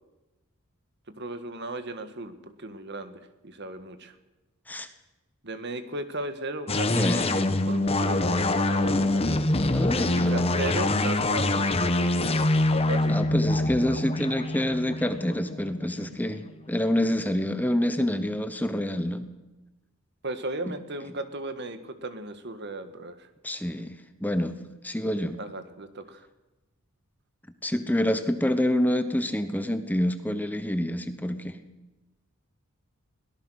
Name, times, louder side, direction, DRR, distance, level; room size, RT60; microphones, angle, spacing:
voice 1, 1.2-4.2 5.4-9.5 10.1-12.4 12.9-13.1 20.2-23.3 25.4-26.3, right 2 dB, 55° right, 9 dB, 1.8 m, -36 dB
sound 1, 6.7-16.1, left 2 dB, 30° left, 1.1 m, -25 dB
voice 2, 6.9-7.4 9.7-10.6 13.1-19.2 23.4-24.6 24.8-25.4 27.6-31.6, left 1 dB, 10° left, 9 dB, 1.1 m, -27 dB
23.0 x 18.0 x 6.5 m, 1.0 s
head